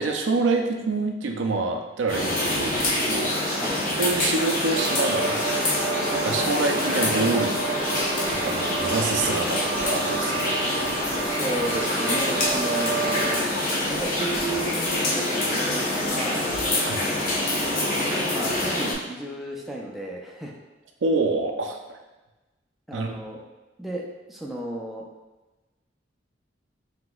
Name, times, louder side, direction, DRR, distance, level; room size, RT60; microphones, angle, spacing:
voice 1, 0.0-3.6 4.0-5.8 6.1-7.5 8.3-10.9 16.8-17.2 21.0-22.0 22.9-23.2, right 3 dB, 85° right, 4 dB, 0.5 m, -27 dB
sound 1, 2.1-18.9, left 1 dB, 45° left, 0.8 m, -26 dB
sound 2, 4.7-13.4, right 3 dB, 55° right, 0.7 m, -30 dB
sound 3, 7.5-15.3 15.6-15.7 16.0-16.1, left 1 dB, 75° left, 1.3 m, -45 dB
voice 2, 11.2-13.5 13.8-16.5 17.4-20.5 22.9-23.4 23.8-24.0 24.3-25.1, right 1 dB, ahead, -2 dB, 0.4 m, -34 dB
5.8 x 2.8 x 2.3 m, 1.1 s
head